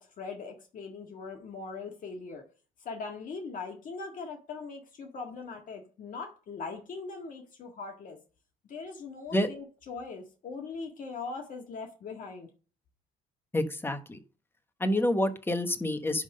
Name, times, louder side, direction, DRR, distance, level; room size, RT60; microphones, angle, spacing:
voice 1, 0.0-2.4 2.8-8.2 8.7-12.5, left 4 dB, 50° left, 2 dB, 1.7 m, -40 dB
voice 2, 13.5-14.2 14.8-16.2, left 1 dB, 15° left, 8 dB, 1.1 m, -28 dB
11.0 x 3.7 x 6.5 m, 0.37 s
cardioid pair, 110°, 17 cm